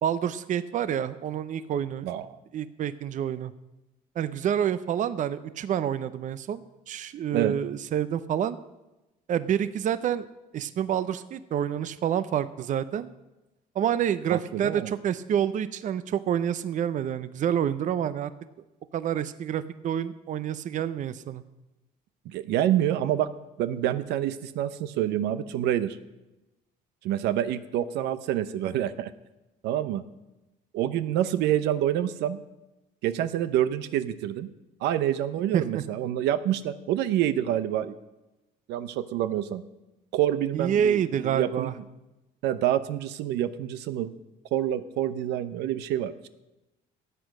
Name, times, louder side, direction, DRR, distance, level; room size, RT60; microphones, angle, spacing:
voice 1, 0.0-2.1 2.5-3.5 4.2-8.6 9.3-10.3 10.5-13.1 13.8-18.3 18.9-21.4 35.5-35.8 40.5-41.7, right 9 dB, 50° right, 14 dB, 0.6 m, -28 dB
voice 2, 14.3-14.9 22.3-23.3 23.6-26.0 27.0-29.1 29.6-30.0 30.7-32.4 33.0-34.5 34.8-37.9 38.7-39.6 40.1-41.7 42.4-44.1 44.5-46.3, right 11 dB, 85° right, 13 dB, 0.7 m, -27 dB
13.5 x 8.4 x 6.4 m, 1.0 s
cardioid pair, 110°, 17 cm